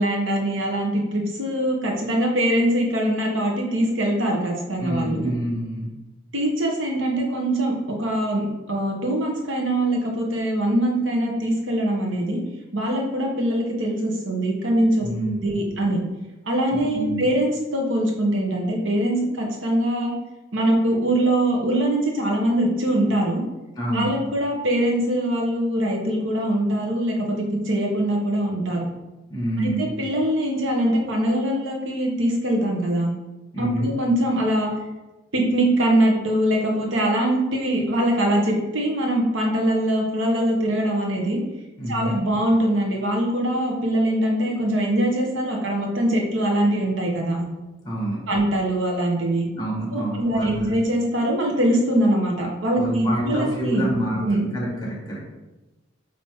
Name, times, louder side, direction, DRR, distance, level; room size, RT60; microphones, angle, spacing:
voice 1, 0.0-5.3 6.3-12.4 12.7-15.1 15.4-16.0 16.4-20.1 20.5-23.4 23.9-28.8 29.6-33.1 33.6-34.7 35.3-41.4 41.9-47.5 48.3-49.5 49.9-53.9 54.2-54.4, right 1 dB, 85° right, 0 dB, 1.3 m, -22 dB
voice 2, 4.8-5.9 15.0-15.6 16.7-17.3 23.8-24.1 29.3-29.9 33.5-33.9 41.8-42.1 47.8-48.3 49.5-50.7 52.8-55.2, right 1 dB, 20° left, -4 dB, 1.7 m, -27 dB
8.3 x 3.1 x 3.7 m, 1.1 s
head